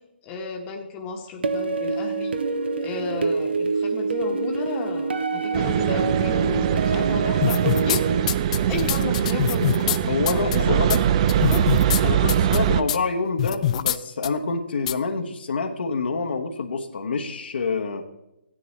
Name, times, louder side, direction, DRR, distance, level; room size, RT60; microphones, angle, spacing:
voice 1, 0.2-2.3 2.8-8.0 8.6-11.6, left 4 dB, 20° left, 1 dB, 1.3 m, -33 dB
sound 1, 1.4-8.2, right 4 dB, 70° right, 0.8 m, -26 dB
sound 2, 5.5-12.8, right 9 dB, 35° right, 0.5 m, -22 dB
sound 3, 7.4-8.0 8.3-10.0 10.3-10.6 10.9-11.0 11.3-12.0 12.3-12.6 12.9-13.0 13.4-14.0 14.2-14.3 14.9-15.0, left 11 dB, 40° left, 0.4 m, -24 dB
voice 2, 10.1-11.0 12.0-18.0, left 4 dB, 70° left, 3 dB, 1.2 m, -27 dB
15.5 x 9.9 x 3.3 m, 0.91 s
hypercardioid pair, 145°, 6 cm